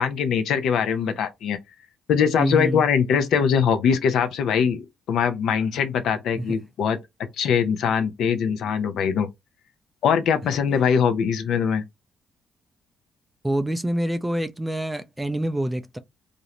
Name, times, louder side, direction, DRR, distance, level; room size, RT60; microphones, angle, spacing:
voice 1, 0.0-1.6 2.1-7.0 7.4-9.3 10.0-11.8, left 7 dB, 75° left, 0.5 m, -22 dB
voice 2, 2.4-2.9 6.4-6.5 13.4-16.0, right 1 dB, 10° right, 0.4 m, -26 dB
2.5 x 2.0 x 2.8 m
cardioid pair, 90°, 0 cm